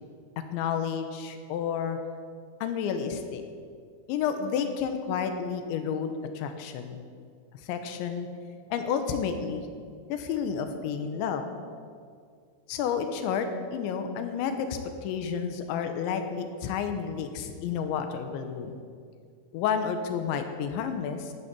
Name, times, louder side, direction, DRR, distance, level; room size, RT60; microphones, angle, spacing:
voice 1, 0.5-2.0 2.6-3.4 4.1-7.0 7.6-8.3 8.7-9.7 10.1-11.4 12.7-18.8 19.5-21.3, left 7 dB, 75° left, 7 dB, 3.1 m, -30 dB
12.0 x 12.0 x 8.2 m, 2.2 s
omnidirectional pair, 5.8 m